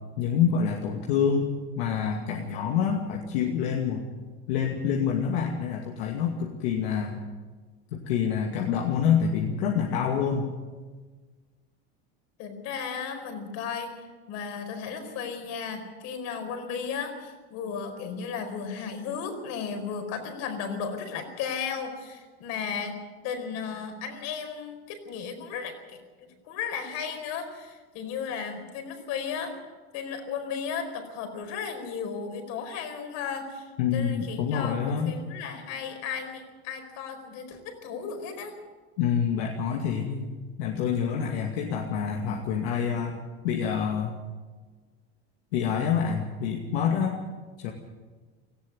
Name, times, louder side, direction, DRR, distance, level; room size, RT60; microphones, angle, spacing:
voice 1, 0.2-4.0 4.5-7.2 7.9-10.5 33.8-35.1 39.0-40.3 40.6-43.2 43.4-44.1 45.5-47.2 47.6-47.7, left 7 dB, 75° left, 1 dB, 2.4 m, -27 dB
voice 2, 12.4-13.9 14.3-23.0 23.2-26.0 26.4-29.5 29.9-38.5, left 6 dB, 60° left, 6 dB, 4.7 m, -35 dB
18.5 x 15.0 x 9.6 m, 1.4 s
supercardioid pair, 125°, 31 cm